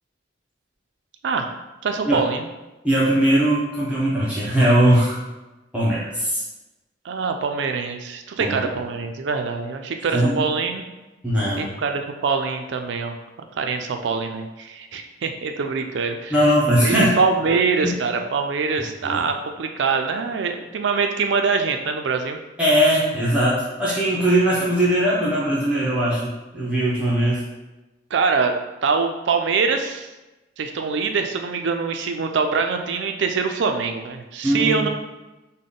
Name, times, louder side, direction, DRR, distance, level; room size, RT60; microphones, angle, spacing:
voice 1, 1.8-2.5 7.0-10.8 11.6-13.2 13.6-16.4 16.8-22.4 28.1-28.5 28.8-30.1 30.6-34.9, right 5 dB, 75° right, 5 dB, 0.4 m, -24 dB
voice 2, 2.8-5.2 5.7-6.4 8.4-8.7 10.1-10.4 11.2-11.7 16.3-17.1 17.5-17.6 17.8-17.9 19.0-19.2 22.6-27.4 34.4-34.9, right 1 dB, 5° right, -8 dB, 0.6 m, -20 dB
3.6 x 2.1 x 3.7 m, 1.1 s
head